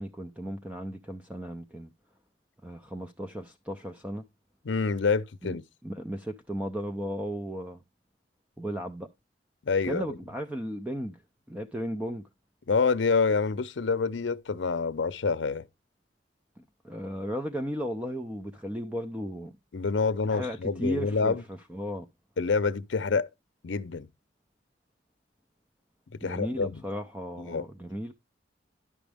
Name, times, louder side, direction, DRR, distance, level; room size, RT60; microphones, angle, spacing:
voice 1, 0.0-1.9 2.6-4.2 5.4-5.6 5.8-7.8 8.6-9.1 9.8-11.2 11.5-12.2 16.6-19.5 20.3-22.1 26.2-28.1, equal, 10° right, 0.4 m, -35 dB
voice 2, 4.7-5.6 9.7-10.0 12.7-15.6 19.7-21.4 22.4-23.3 23.6-24.1 26.2-26.7 27.4-27.6, left 4 dB, 75° left, 0.6 m, -27 dB
11.0 x 6.1 x 3.4 m
head